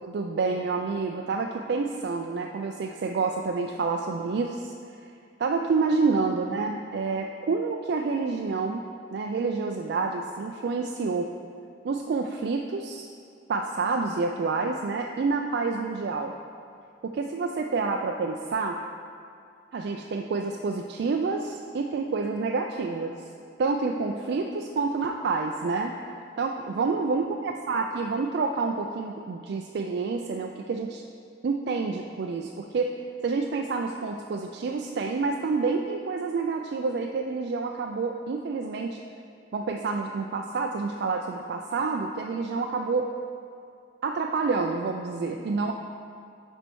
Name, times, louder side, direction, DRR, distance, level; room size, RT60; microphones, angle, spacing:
voice 1, 0.0-4.7 5.4-8.8 9.1-11.3 11.8-13.1 13.5-16.3 17.0-18.8 19.7-23.1 23.6-25.9 26.4-31.0 31.4-32.9 33.2-39.0 39.5-43.1 44.0-45.7, right 4 dB, 65° right, 2 dB, 0.4 m, -28 dB
9.3 x 4.4 x 4.6 m, 2.3 s
head